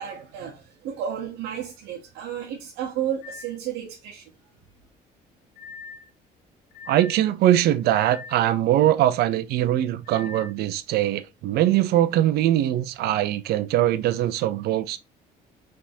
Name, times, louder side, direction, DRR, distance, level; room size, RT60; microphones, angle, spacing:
voice 1, 0.0-4.4, right 9 dB, 90° right, 0.9 m, -32 dB
sound 1, 3.2-3.6 5.6-6.1 6.7-7.2 7.9-8.4 10.0-10.5, left 5 dB, 65° left, 1.6 m, -41 dB
voice 2, 6.9-15.0, right 13 dB, 70° right, 0.5 m, -22 dB
5.1 x 3.5 x 2.7 m
cardioid pair, 110°, 17 cm